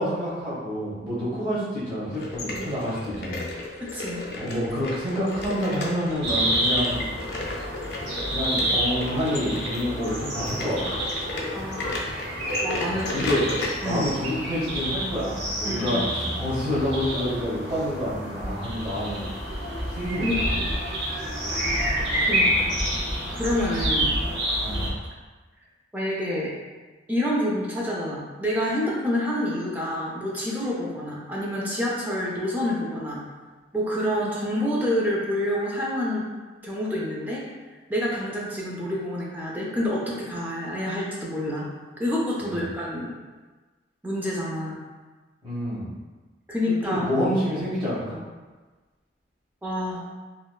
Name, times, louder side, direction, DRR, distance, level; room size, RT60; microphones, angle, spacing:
voice 1, 0.0-3.5 4.4-7.0 8.3-11.0 12.8-13.5 13.8-19.3 19.9-20.6 22.5-22.8 24.0-24.1 24.6-24.8 42.4-42.6 45.4-46.0 46.7-48.2, equal, 25° right, -9 dB, 1.0 m, -28 dB
sound 1, 2.1-13.7, left 2 dB, 55° left, 0.4 m, -34 dB
voice 2, 3.8-4.2 11.5-12.1 12.6-13.3 13.8-14.0 15.6-16.3 20.2-20.7 22.2-22.7 23.3-24.2 25.9-26.5 27.1-33.2 33.7-36.2 36.6-37.4 37.9-41.7 42.0-43.1 44.0-44.8 46.5-47.1 49.6-50.0, left 1 dB, 10° right, -5 dB, 0.3 m, -28 dB
sound 2, 6.2-24.9, right 1 dB, 80° right, 0.9 m, -28 dB
2.9 x 2.2 x 2.3 m, 1.3 s
head